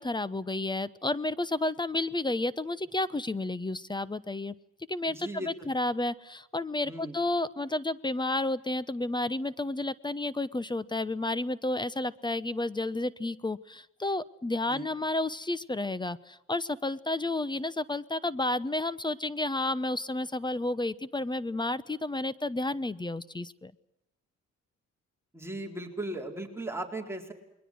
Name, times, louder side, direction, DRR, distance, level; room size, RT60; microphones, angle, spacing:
voice 1, 0.0-4.5 4.9-23.7, left 2 dB, 15° left, 18 dB, 0.9 m, -31 dB
voice 2, 5.1-5.7 6.9-7.2 14.7-14.9 25.3-27.3, right 1 dB, 10° right, 2 dB, 4.1 m, -37 dB
29.0 x 22.0 x 6.4 m, 0.86 s
cardioid pair, 90°, 30 cm